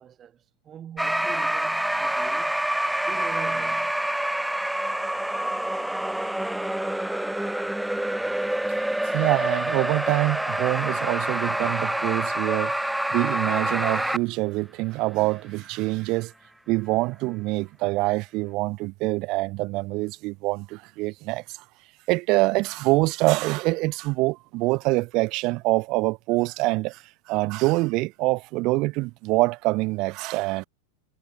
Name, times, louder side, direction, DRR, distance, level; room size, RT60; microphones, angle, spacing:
voice 1, 0.0-2.7 3.1-4.0, right 9 dB, 30° right, 4.6 m, -42 dB
sound 1, 1.0-14.2, right 1 dB, 5° right, 0.6 m, -27 dB
voice 2, 9.0-12.7 13.1-16.3 16.7-21.4 22.1-30.6, right 23 dB, 50° right, 0.3 m, -25 dB
hypercardioid pair, 110°, 0 cm